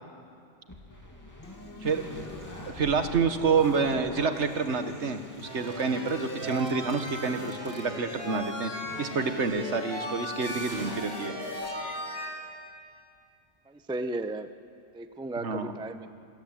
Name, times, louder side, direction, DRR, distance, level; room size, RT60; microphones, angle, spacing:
sound 1, 0.7-12.7, left 1 dB, 15° left, 2.2 m, -45 dB
Human voice / Acoustic guitar, 1.4-9.4, left 1 dB, 70° left, 3.9 m, -48 dB
voice 1, 2.7-8.7 9.0-11.4 15.4-15.7, right 5 dB, 70° right, 8 dB, 1.6 m, -28 dB
sound 2, 5.4-12.3, equal, 35° right, 7.1 m, -37 dB
voice 2, 13.7-14.5 14.9-16.1, right 2 dB, 5° right, 10 dB, 0.4 m, -35 dB
27.0 x 14.5 x 9.0 m, 2.4 s
omnidirectional pair, 1.3 m